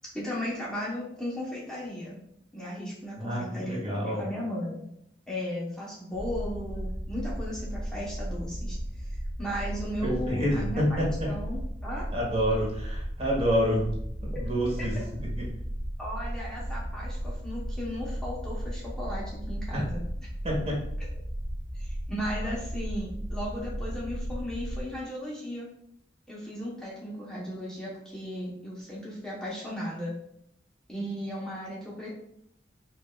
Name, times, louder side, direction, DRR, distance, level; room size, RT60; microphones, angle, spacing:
voice 1, 0.1-2.2 2.5-4.8 5.3-8.8 9.0-9.1 9.4-12.1 14.8-15.0 16.0-20.0 21.7-25.7 26.3-30.1 30.9-32.1, equal, 5° left, -7 dB, 0.9 m, -36 dB
voice 2, 3.2-4.2 10.0-11.3 12.1-13.8 14.2-15.3 19.7-19.8 20.4-20.8, equal, 35° right, -3 dB, 1.1 m, -28 dB
sound 1, 6.1-24.8, equal, 80° right, 0.8 m, -35 dB
5.2 x 2.6 x 2.3 m, 0.72 s
head